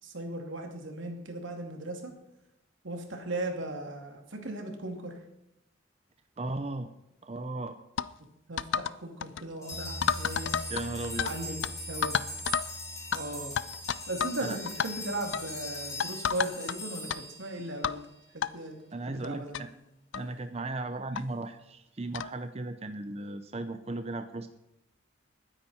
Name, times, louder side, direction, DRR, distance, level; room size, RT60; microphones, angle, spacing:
voice 1, 0.0-2.1 2.8-5.1 8.5-10.5 11.2-11.6 11.9-12.2 13.1-13.5 14.1-14.6 14.8-18.0 18.3-18.8 19.1-19.7, right 2 dB, 85° right, 3 dB, 2.6 m, -37 dB
voice 2, 6.4-6.9 7.2-7.8 10.7-11.3 14.4-14.6 18.9-19.7 20.1-24.5, right 2 dB, 30° right, 9 dB, 0.6 m, -36 dB
sound 1, 8.0-8.1 8.6-9.0 9.2-9.4 10.0-11.3 11.6-11.7 12.0-12.7 13.1-13.2 13.6-14.4 14.7-14.9 15.3-15.5 16.0-16.8 17.1-17.2 17.8-18.0 18.4-18.5 19.2-19.3 19.5-19.6 20.1-20.3 21.2-21.3 22.1-22.3, left 7 dB, 75° left, 0.4 m, -30 dB
sound 2, 9.6-18.1, left 1 dB, 15° left, 6.1 m, -41 dB
Bass guitar, 9.7-16.0, right 1 dB, 70° right, 1.9 m, -46 dB
20.5 x 9.8 x 4.3 m, 0.87 s
head